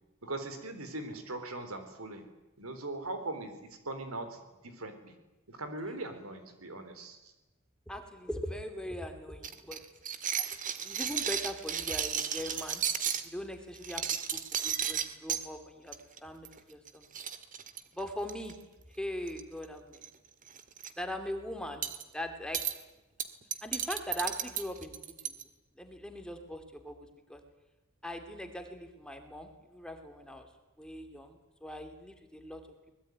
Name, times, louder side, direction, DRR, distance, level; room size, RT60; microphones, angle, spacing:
voice 1, 0.2-2.2 2.6-5.2 5.5-7.3, right 2 dB, 80° right, 8 dB, 4.1 m, -40 dB
voice 2, 7.9-9.8 10.4-10.5 10.8-12.8 13.2-14.0 14.3-15.9 16.2-17.0 17.9-18.5 19.0-20.0 21.0-21.8 22.1-22.6 23.6-25.0 25.2-25.3 25.8-27.4 28.0-30.5 30.8-32.6, equal, 5° left, 6 dB, 2.7 m, -40 dB
sound 1, 9.4-13.3 13.8-15.4 15.9-16.2 16.4-16.6 16.9-17.0 17.1-18.5 19.3-19.6 19.9-20.1 20.5-20.9 21.8-22.0 22.5-22.7 23.2-25.4, right 8 dB, 40° right, 1.8 m, -34 dB
23.5 x 20.5 x 9.4 m, 1.0 s
head